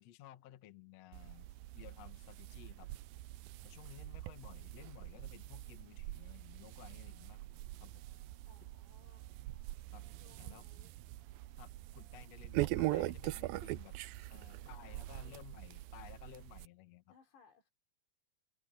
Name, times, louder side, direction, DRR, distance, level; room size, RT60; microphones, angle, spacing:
voice 1, 0.0-2.9 3.6-7.4 7.8-8.0 9.9-10.0 10.4-10.6 11.6-14.0 14.3-17.2, left 13 dB, 60° left, 1.8 m, -56 dB
sound 1, 1.1-16.7, right 17 dB, 80° right, 2.1 m, -43 dB
sound 2, 6.8-12.2, right 4 dB, 20° right, 8.5 m, -76 dB
voice 2, 8.5-9.3 10.2-10.9 14.7-15.4 17.1-17.7, left 6 dB, 90° left, 5.5 m, -65 dB
omnidirectional pair, 4.7 m